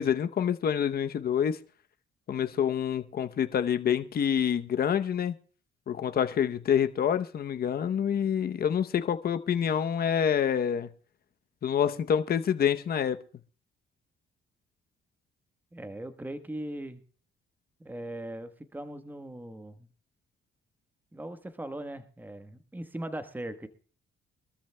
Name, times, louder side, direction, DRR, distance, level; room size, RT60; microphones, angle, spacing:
voice 1, 0.0-1.6 2.3-5.4 5.9-10.9 11.6-13.2, left 8 dB, 50° left, 0.8 m, -27 dB
voice 2, 15.7-17.0 17.8-19.9 21.1-23.7, right 1 dB, 10° right, 1.2 m, -39 dB
24.0 x 13.0 x 2.2 m
cardioid pair, 90°, 20 cm